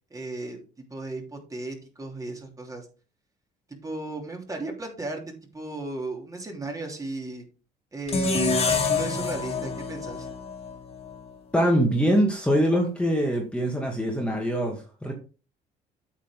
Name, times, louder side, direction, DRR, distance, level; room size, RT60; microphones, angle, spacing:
voice 1, 0.1-0.6 0.9-2.9 3.8-5.2 5.5-7.4 7.9-10.3, right 2 dB, 20° right, 1 dB, 3.2 m, -35 dB
sound 1, 8.1-11.3, left 4 dB, 35° left, 2.6 m, -27 dB
voice 2, 11.5-15.1, equal, 5° left, 0 dB, 2.3 m, -23 dB
8.8 x 7.3 x 3.8 m, 0.34 s
cardioid pair, 110°, 17 cm